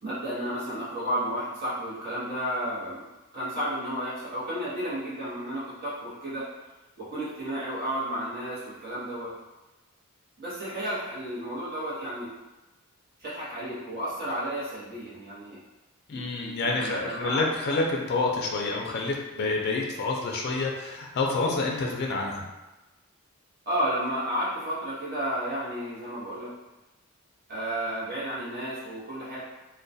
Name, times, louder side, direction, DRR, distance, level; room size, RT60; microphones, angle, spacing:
voice 1, 0.0-3.0 3.3-6.5 7.0-9.3 10.4-12.3 13.2-15.6 16.1-17.4 23.7-26.5 27.5-29.4, equal, 45° right, -10 dB, 0.8 m, -32 dB
voice 2, 16.1-22.5, left 3 dB, 50° left, -1 dB, 0.4 m, -28 dB
2.2 x 2.1 x 2.6 m, 1.1 s
head